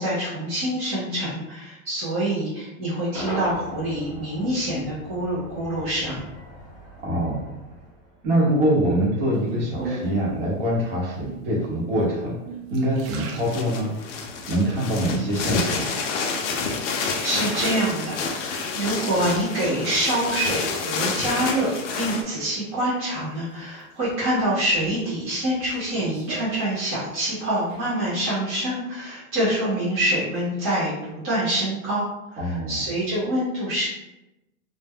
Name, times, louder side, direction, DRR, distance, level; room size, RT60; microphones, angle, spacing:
voice 1, 0.0-6.3 17.0-33.9, right 1 dB, 15° right, -13 dB, 0.4 m, -26 dB
Cheering / Crowd / Fireworks, 3.1-8.4, equal, 15° left, 0.8 m, -39 dB
voice 2, 7.0-7.4 8.2-12.4 12.7-13.9 14.5-15.9 32.4-32.8, right 1 dB, 40° right, -3 dB, 0.8 m, -24 dB
sound 1, 9.3-10.4 11.2-11.7 12.2-14.2 14.7-15.3 16.1-16.7 17.1-18.4 18.9-20.1 20.5-22.1 23.5-24.1 24.6-27.2 27.4-27.9, right 4 dB, 70° right, 0.6 m, -39 dB
sound 2, 13.3-22.2, left 5 dB, 60° left, 0.5 m, -29 dB
2.1 x 2.0 x 3.4 m, 0.95 s
supercardioid pair, 170°, 41 cm